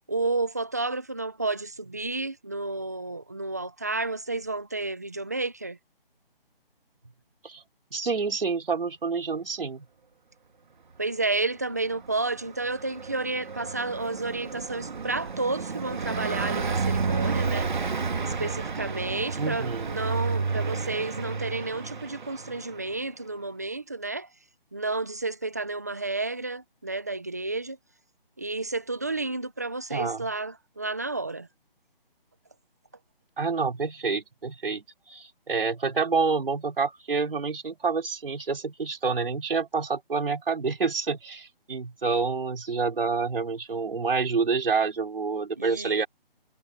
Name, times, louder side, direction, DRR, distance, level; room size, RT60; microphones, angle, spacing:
voice 1, 0.1-5.8 11.0-17.7 18.2-24.3 24.7-27.8 28.4-31.5 45.6-46.0, right 3 dB, 15° right, 0.7 m, -31 dB
voice 2, 7.9-9.8 19.4-19.9 29.9-30.3 33.4-46.1, right 4 dB, 70° right, 4.2 m, -28 dB
Car passing by, 11.9-22.9, right 4 dB, 55° right, 1.9 m, -31 dB
hypercardioid pair, 175°, 29 cm